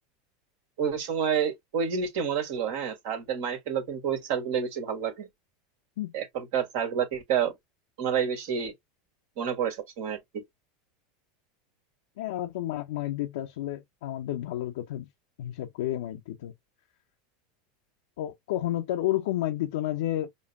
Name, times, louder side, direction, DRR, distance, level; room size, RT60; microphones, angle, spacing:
voice 1, 0.8-5.3 6.1-7.5 8.0-8.7 9.4-10.4, right 7 dB, 65° right, 1.6 m, -29 dB
voice 2, 12.2-15.1 15.4-16.5 18.2-20.3, left 14 dB, 70° left, 0.5 m, -31 dB
5.2 x 2.2 x 2.6 m
hypercardioid pair, 90°, 0 cm